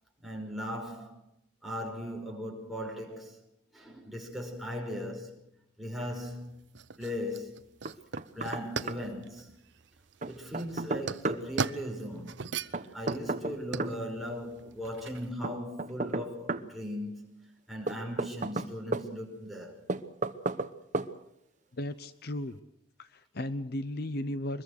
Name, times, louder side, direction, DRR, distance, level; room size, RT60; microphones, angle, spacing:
voice 1, 0.2-1.2 1.6-3.4 3.7-5.4 5.8-6.6 7.0-7.6 8.3-9.5 10.2-12.6 12.9-17.3 17.7-19.8 23.6-23.7, equal, ahead, 5.3 m, -38 dB
sound 1, 6.0-15.3, right 5 dB, 60° right, 0.8 m, -39 dB
Knock, 7.9-8.6 8.9-9.0 10.2-11.4 12.7-14.0 15.4-16.7 17.9-19.1 19.9-20.7 20.9-21.1, right 2 dB, 40° right, 1.0 m, -33 dB
voice 2, 21.7-22.6 23.0-24.6, left 1 dB, 50° left, 0.8 m, -35 dB
24.5 x 21.5 x 6.5 m
head